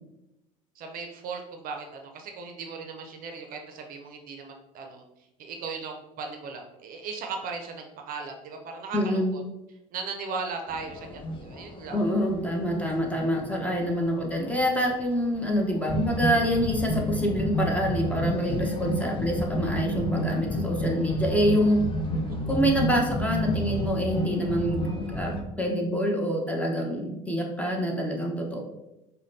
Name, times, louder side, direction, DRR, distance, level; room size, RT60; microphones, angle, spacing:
voice 1, 0.8-5.0 5.4-9.4 9.9-12.0 22.3-22.7, right 4 dB, 55° right, 3 dB, 0.6 m, -37 dB
voice 2, 8.9-9.3 11.9-21.9 22.5-24.8 25.1-28.6, equal, 10° left, -1 dB, 0.9 m, -26 dB
sound 1, 10.7-25.4, equal, 30° left, 0.6 m, -31 dB
4.9 x 2.2 x 2.7 m, 0.92 s
hypercardioid pair, 75°, 18 cm